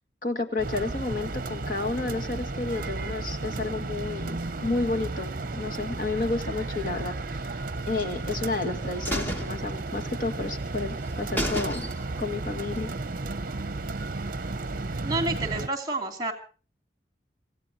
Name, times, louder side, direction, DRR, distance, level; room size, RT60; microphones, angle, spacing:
voice 1, 0.2-7.6 7.9-11.9 12.2-12.9, left 3 dB, 50° left, 3 dB, 1.9 m, -31 dB
sound 1, 0.6-15.7, right 2 dB, 50° right, 0.8 m, -33 dB
sound 2, 8.0-8.7 9.0-10.3 10.7-10.8 11.1-11.2 11.4-12.3 12.6-12.7, equal, 10° left, 2.0 m, -32 dB
voice 2, 15.0-16.3, right 2 dB, 25° right, 5 dB, 2.7 m, -29 dB
27.0 x 16.0 x 2.8 m, 0.37 s
head